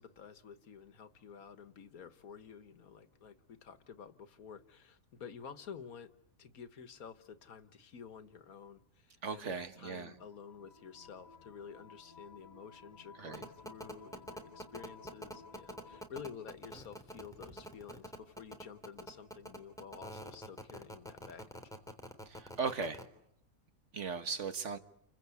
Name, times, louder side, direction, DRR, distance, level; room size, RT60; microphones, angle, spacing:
voice 1, 0.0-6.1 6.4-21.5, left 6 dB, 90° left, 1.8 m, -51 dB
voice 2, 9.2-10.1 13.2-13.4 22.3-23.0 23.9-24.8, right 5 dB, 55° right, 1.7 m, -38 dB
sound 1, 10.2-16.1, left 4 dB, 35° left, 1.4 m, -56 dB
sound 2, 13.3-23.0, equal, ahead, 3.4 m, -45 dB
30.0 x 24.0 x 8.4 m
omnidirectional pair, 1.5 m